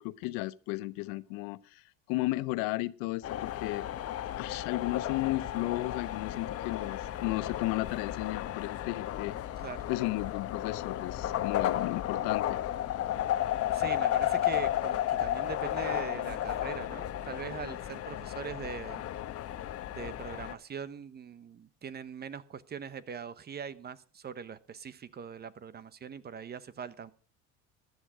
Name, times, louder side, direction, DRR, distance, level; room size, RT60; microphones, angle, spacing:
voice 1, 0.0-1.6 2.1-3.9 4.4-9.4 9.9-12.6, left 20 dB, 75° left, 0.8 m, -34 dB
sound 1, 3.2-20.5, left 12 dB, 45° left, 1.1 m, -33 dB
voice 2, 13.7-19.1 19.9-27.1, right 7 dB, 30° right, 0.9 m, -42 dB
14.5 x 10.5 x 4.9 m
supercardioid pair, 115°, 34 cm